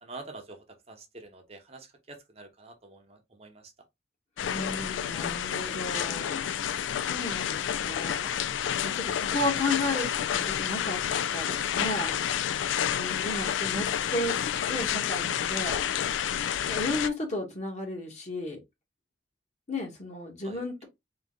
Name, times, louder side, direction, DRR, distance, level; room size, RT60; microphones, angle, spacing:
voice 1, 0.0-3.7 12.9-13.1 16.2-16.3 20.4-20.6, right 3 dB, 35° right, 0.7 m, -47 dB
sound 1, 4.4-17.1, left 9 dB, 85° left, 0.3 m, -29 dB
voice 2, 4.4-6.4 7.0-8.3 8.8-11.0 11.3-12.1 12.9-15.8 16.7-18.6 19.7-20.8, left 2 dB, 40° left, 1.3 m, -33 dB
3.8 x 2.7 x 3.5 m
head